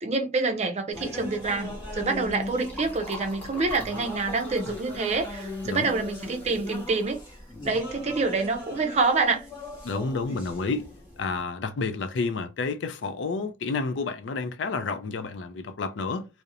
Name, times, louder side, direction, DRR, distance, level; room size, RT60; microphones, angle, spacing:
voice 1, 0.0-7.2 7.6-9.4, right 3 dB, 35° right, 0.4 m, -27 dB
sound 1, 0.9-11.4, left 2 dB, 25° left, 1.3 m, -39 dB
Liquid, 1.5-8.2, left 2 dB, 10° left, 0.9 m, -44 dB
voice 2, 9.8-10.9 11.2-16.3, left 4 dB, 75° left, 0.4 m, -30 dB
2.8 x 2.0 x 2.4 m
head